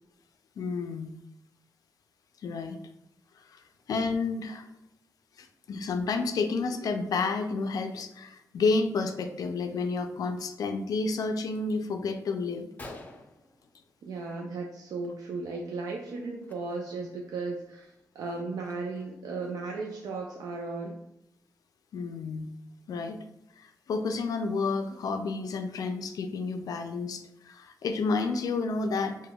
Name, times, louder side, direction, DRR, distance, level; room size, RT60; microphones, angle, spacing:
voice 1, 0.6-1.1 2.4-2.8 3.4-3.6 3.9-4.7 5.4-12.7 21.9-22.5 22.9-23.2 23.6-29.2, left 4 dB, 75° left, 6 dB, 0.4 m, -30 dB
Gunshot gunfire, 12.8-14.4 14.7-15.1 15.3-15.6 16.4-16.5 17.1-17.2 17.6-19.2, left 2 dB, 25° left, 0.6 m, -49 dB
voice 2, 14.0-21.0, right 3 dB, 80° right, 0 dB, 0.4 m, -36 dB
5.0 x 2.2 x 2.3 m, 0.84 s
cardioid pair, 95°, 6 cm